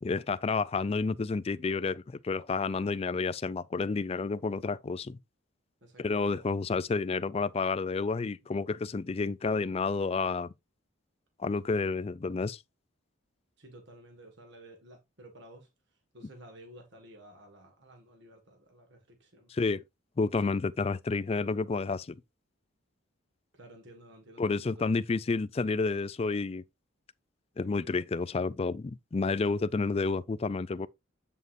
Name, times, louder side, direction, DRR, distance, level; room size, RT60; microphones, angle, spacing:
voice 1, 0.0-5.2 6.0-10.5 11.4-12.6 19.5-19.8 20.2-22.2 24.4-26.6 27.6-30.9, left 4 dB, 30° left, 0.3 m, -30 dB
voice 2, 5.8-6.5 13.6-15.7 16.1-19.5 23.5-24.9, right 1 dB, 55° right, 1.7 m, -53 dB
8.0 x 7.3 x 2.6 m
head